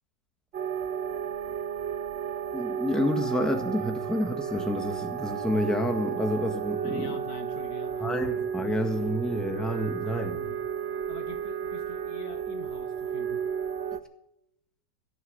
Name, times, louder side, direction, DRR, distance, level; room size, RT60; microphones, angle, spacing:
sound 1, 0.5-14.0, right 8 dB, 55° right, 0.7 m, -33 dB
voice 1, 2.5-7.2 8.0-10.4, left 1 dB, ahead, 5 dB, 1.5 m, -29 dB
voice 2, 6.8-8.2 10.3-10.6 11.1-13.4, left 6 dB, 60° left, 9 dB, 1.6 m, -45 dB
17.5 x 7.2 x 9.6 m, 0.81 s
omnidirectional pair, 1.9 m